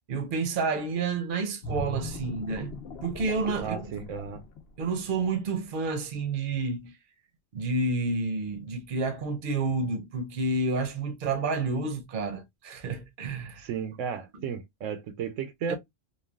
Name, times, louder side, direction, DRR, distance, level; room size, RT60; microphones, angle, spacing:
voice 1, 0.1-2.7 3.0-3.8 4.8-6.9 7.5-13.7 14.3-14.4 15.7-15.8, right 3 dB, 50° right, 0.8 m, -30 dB
sound 1, 1.6-5.2 5.6-5.9, left 1 dB, 60° left, 0.9 m, -38 dB
voice 2, 3.6-4.4 13.6-15.8, right 7 dB, 80° right, 1.0 m, -34 dB
3.2 x 2.3 x 2.2 m
omnidirectional pair, 1.3 m